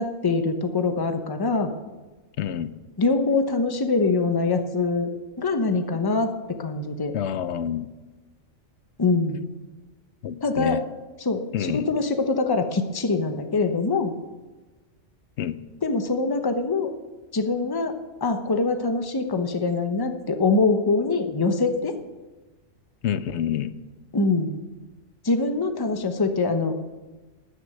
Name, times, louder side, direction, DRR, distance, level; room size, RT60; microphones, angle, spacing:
voice 1, 0.0-1.7 3.0-5.1 5.4-7.1 9.0-9.5 10.4-10.8 11.2-14.1 15.8-16.9 17.3-17.9 18.2-22.0 24.1-24.5 25.2-26.7, left 3 dB, 20° left, 6 dB, 0.8 m, -24 dB
voice 2, 2.4-2.7 7.1-7.9 10.2-10.8 11.5-11.9 15.4-15.6 23.0-23.7, left 9 dB, 65° left, 14 dB, 0.8 m, -27 dB
13.5 x 6.5 x 8.9 m, 1.2 s
omnidirectional pair, 1.4 m